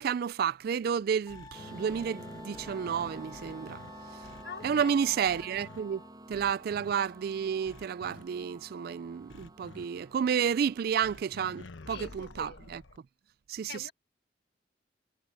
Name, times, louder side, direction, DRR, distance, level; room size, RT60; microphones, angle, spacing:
voice 1, 0.0-3.8 4.6-6.0 6.3-12.8 13.5-13.9, right 7 dB, 50° right, 0.3 m, -31 dB
sound 1, 1.3-3.9 4.2-4.8 5.2-5.8 6.3-6.9 7.6-8.2 9.3-9.8 11.0-13.0, left 3 dB, 80° left, 1.0 m, -50 dB
Wind instrument woodwind instrument, 1.3-6.1, left 3 dB, 20° left, 5.2 m, -51 dB
sound 2, 1.5-11.6, right 1 dB, 20° right, 6.7 m, -50 dB
voice 2, 4.4-4.9 11.9-12.6 13.7-13.9, left 4 dB, 60° left, 2.2 m, -44 dB
head